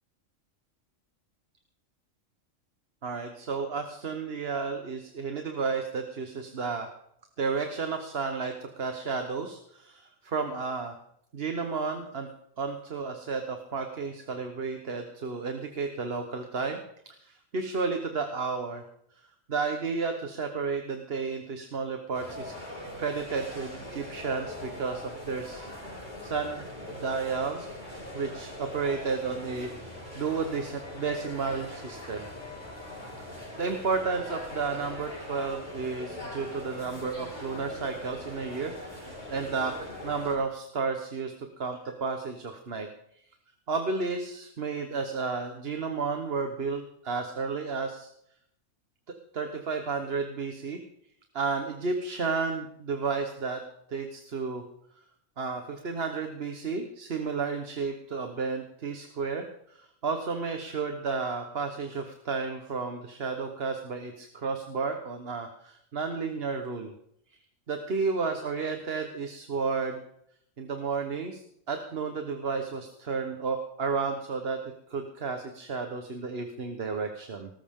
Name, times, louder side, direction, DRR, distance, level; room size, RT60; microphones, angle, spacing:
voice 1, 3.0-6.9 7.4-11.0 11.3-12.3 12.6-16.8 17.0-18.8 19.5-22.6 23.0-25.7 26.2-27.7 28.1-32.3 33.3-42.9 43.7-48.1 49.1-50.8 51.3-53.6 53.9-54.6 55.4-66.9 67.7-70.0 70.6-77.5, right 4 dB, 50° right, 5 dB, 1.3 m, -32 dB
sound 1, 22.1-40.4, left 1 dB, 35° left, 5.1 m, -41 dB
18.5 x 14.0 x 3.7 m, 0.73 s
omnidirectional pair, 1.4 m